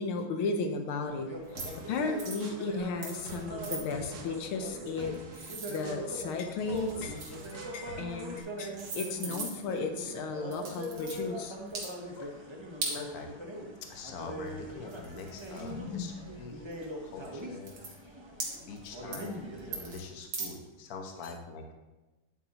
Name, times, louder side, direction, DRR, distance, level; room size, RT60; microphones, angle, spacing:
voice 1, 0.0-7.2 7.7-11.6 12.1-12.3 15.6-16.1 21.2-21.3, left 4 dB, 85° left, 6 dB, 1.7 m, -35 dB
sound 1, 1.0-20.0, equal, 30° right, 0.5 m, -42 dB
sound 2, 1.5-8.4, right 2 dB, 45° right, 1.1 m, -49 dB
sound 3, 1.5-1.8 2.2-2.5 3.0-3.4 3.6-3.8 4.9-6.3 6.7-7.6 8.4-8.5 8.7-9.8 10.5-11.2 11.7-11.9 12.8-13.0 14.5-14.6 14.9-16.0 16.7-16.8 17.2-17.3 17.6-17.9 18.4-18.9 19.1-19.3 19.7-20.0 20.3-20.5, right 4 dB, 80° right, 2.5 m, -39 dB
voice 2, 12.9-13.3 13.8-16.6 17.0-17.8 18.6-21.7, left 4 dB, 50° left, 3 dB, 1.4 m, -44 dB
10.5 x 8.1 x 2.9 m, 1.1 s
omnidirectional pair, 2.3 m